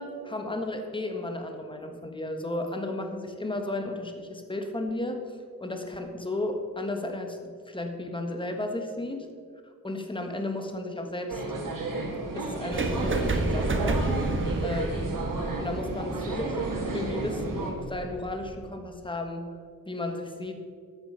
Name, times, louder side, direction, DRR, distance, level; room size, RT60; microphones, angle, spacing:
voice 1, 0.0-5.2 5.6-9.3 9.8-11.4 12.3-14.1 14.6-15.2 15.6-16.7 16.9-19.5 19.9-20.5, left 2 dB, 15° left, 4 dB, 1.5 m, -34 dB
sound 1, 11.3-17.7, right 2 dB, 65° right, 2.4 m, -32 dB
sound 2, 12.7-18.6, right 2 dB, 35° right, 1.3 m, -31 dB
13.0 x 9.1 x 5.6 m, 2.1 s
wide cardioid pair, 130°, 35 cm